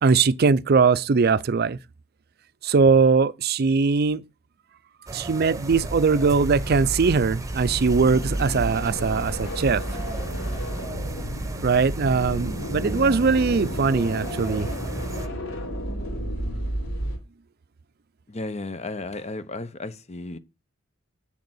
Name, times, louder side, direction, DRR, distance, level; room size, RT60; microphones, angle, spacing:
voice 1, 0.0-1.8 2.6-4.2 5.1-9.8 11.6-14.7, right 5 dB, 50° right, 0.5 m, -21 dB
sound 1, 5.1-15.3, right 2 dB, 15° right, 1.1 m, -36 dB
sound 2, 5.7-17.2, equal, 75° left, 3.6 m, -31 dB
voice 2, 18.3-20.4, left 2 dB, 35° left, 0.9 m, -34 dB
7.5 x 6.7 x 7.9 m
head